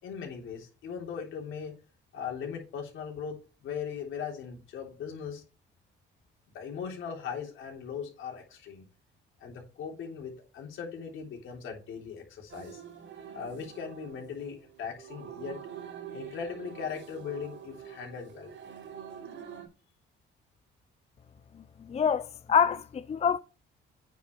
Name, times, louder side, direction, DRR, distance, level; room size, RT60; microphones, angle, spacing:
voice 1, 0.0-1.7 2.1-5.4 6.5-8.9 9.4-12.8 13.3-15.6 16.1-18.5, left 6 dB, 80° left, 3.3 m, -39 dB
sound 1, 12.5-19.7, right 8 dB, 75° right, 4.8 m, -45 dB
voice 2, 21.9-23.4, left 7 dB, 35° left, 0.5 m, -26 dB
9.1 x 5.3 x 4.5 m
cardioid pair, 90°, 20 cm